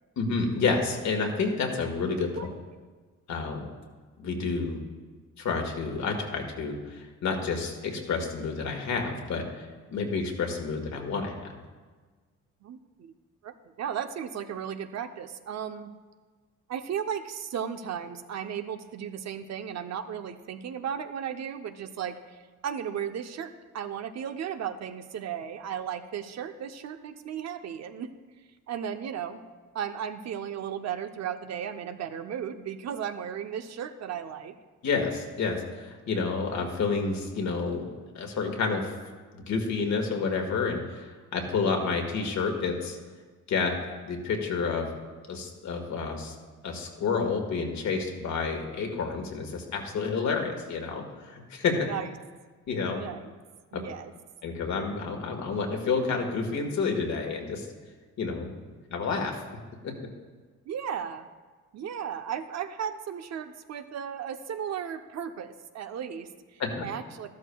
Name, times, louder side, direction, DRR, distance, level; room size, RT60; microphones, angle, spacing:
voice 1, 0.2-2.3 3.3-3.6 4.2-4.8 5.4-11.4 34.8-37.9 38.1-38.9 39.3-43.0 43.5-43.8 44.0-44.9 45.3-46.4 46.6-51.8 52.7-53.0 53.7-53.8 54.4-57.7 58.2-58.5 58.9-59.4 59.8-59.9 66.6-66.9, left 4 dB, 65° left, 2 dB, 1.8 m, -29 dB
voice 2, 12.6-13.1 13.4-15.9 16.7-22.4 22.6-28.1 28.7-29.4 29.7-34.5 51.7-52.1 52.8-53.3 53.7-54.1 60.7-61.3 61.7-67.3, right 8 dB, 60° right, 8 dB, 0.7 m, -35 dB
13.0 x 12.5 x 2.3 m, 1.4 s
cardioid pair, 90°, 30 cm